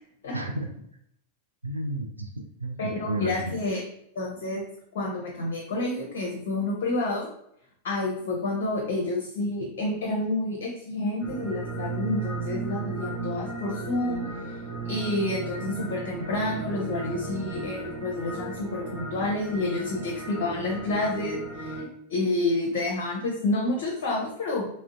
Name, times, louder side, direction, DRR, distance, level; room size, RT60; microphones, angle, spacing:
voice 1, 0.3-0.7 1.6-3.6, right 1 dB, 80° right, 4 dB, 0.3 m, -33 dB
voice 2, 2.8-3.8 4.2-4.6 4.9-7.3 7.8-14.2 14.9-24.7, left 2 dB, 55° left, -2 dB, 0.6 m, -29 dB
sound 1, 11.2-21.8, right 4 dB, 25° right, 1.4 m, -35 dB
3.6 x 2.1 x 2.5 m, 0.72 s
figure-of-eight pair, 90°, 0 cm